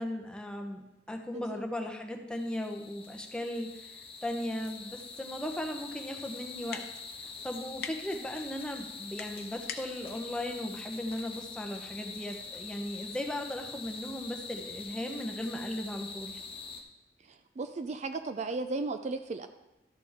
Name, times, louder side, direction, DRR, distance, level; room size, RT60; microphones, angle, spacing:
voice 1, 0.0-6.8 7.1-16.4, left 1 dB, 5° left, 3 dB, 0.9 m, -37 dB
sound 1, 2.3-16.8, left 4 dB, 30° left, 1.1 m, -44 dB
sound 2, 5.5-12.3, left 6 dB, 60° left, 0.8 m, -48 dB
voice 2, 17.6-19.5, right 3 dB, 40° right, 8 dB, 0.4 m, -35 dB
12.5 x 6.8 x 3.6 m, 0.95 s
head